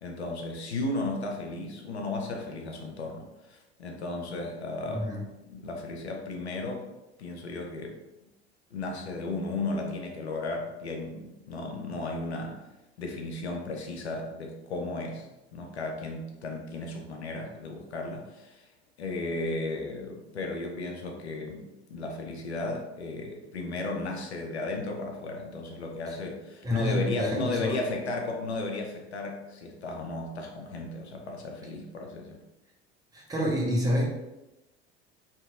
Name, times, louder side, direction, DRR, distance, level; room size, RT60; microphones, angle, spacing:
voice 1, 0.0-5.1 5.4-6.9 7.2-8.0 8.7-12.6 13.0-18.7 19.0-32.4, left 2 dB, 80° left, 1 dB, 0.6 m, -34 dB
voice 2, 4.9-5.2 26.6-27.8 33.1-34.1, equal, 10° right, -3 dB, 0.7 m, -28 dB
2.8 x 2.7 x 2.3 m, 0.97 s
figure-of-eight pair, 70°, 32 cm